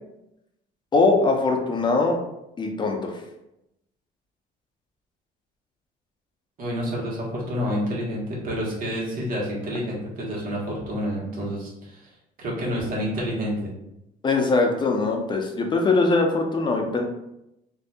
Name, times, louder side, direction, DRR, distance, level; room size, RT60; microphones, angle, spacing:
voice 1, 0.9-2.2 2.6-3.1 14.2-17.0, left 3 dB, 25° left, 2 dB, 0.6 m, -21 dB
voice 2, 6.6-12.1 12.4-13.7, equal, 55° right, -4 dB, 1.3 m, -29 dB
4.0 x 2.6 x 2.3 m, 0.86 s
cardioid pair, 110°, 17 cm